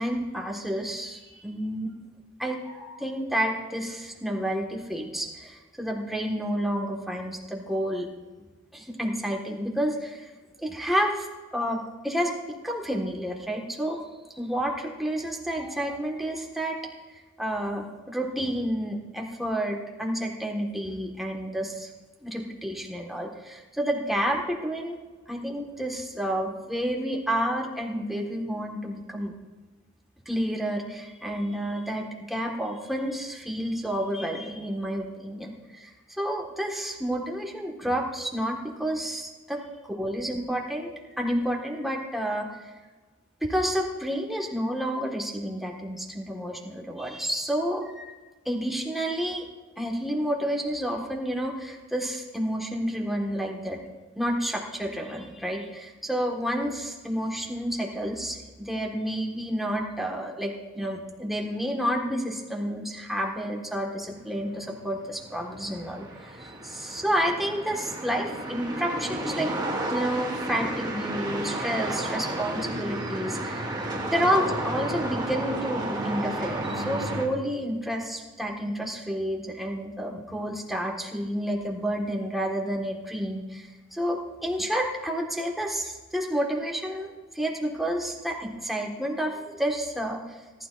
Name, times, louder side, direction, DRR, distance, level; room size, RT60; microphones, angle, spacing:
voice 1, 0.0-1.9 2.4-8.1 8.7-10.3 10.6-12.3 12.6-14.0 14.3-16.8 17.4-21.9 22.2-25.0 25.3-29.3 30.2-35.9 36.2-39.6 40.0-42.5 43.4-48.1 48.4-49.4 49.8-53.8 54.1-69.5 69.9-73.7 74.1-90.4, equal, ahead, 0 dB, 1.5 m, -30 dB
sound 1, 64.1-77.3, right 1 dB, 20° right, 1.5 m, -32 dB
19.0 x 12.0 x 2.5 m, 1.3 s
head